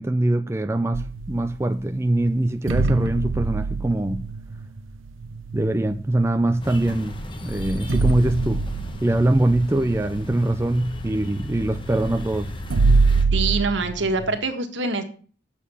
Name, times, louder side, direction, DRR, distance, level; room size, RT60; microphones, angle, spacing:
voice 1, 0.0-4.3 5.5-8.6 9.0-12.5, right 1 dB, 15° right, 0.4 m, -23 dB
sound 1, 0.9-1.9 2.7-6.6 7.1-7.2 7.5-14.4, right 3 dB, 85° right, 0.6 m, -25 dB
sound 2, 6.6-13.2, left 1 dB, 25° left, 1.2 m, -35 dB
voice 2, 13.3-15.0, right 3 dB, 70° right, 1.7 m, -24 dB
8.7 x 6.9 x 7.0 m
head